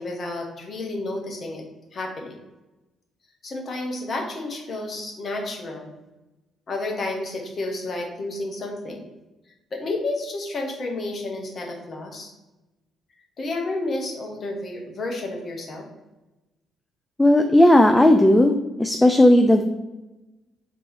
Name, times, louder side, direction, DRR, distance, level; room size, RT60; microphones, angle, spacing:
voice 1, 0.0-1.6 1.9-2.4 3.4-6.0 6.7-9.1 9.7-12.3 13.4-15.9, left 2 dB, 50° left, 1 dB, 1.1 m, -31 dB
voice 2, 17.2-19.6, left 1 dB, 15° left, 5 dB, 0.4 m, -15 dB
3.6 x 3.1 x 4.7 m, 1.1 s
hypercardioid pair, 50°, 0 cm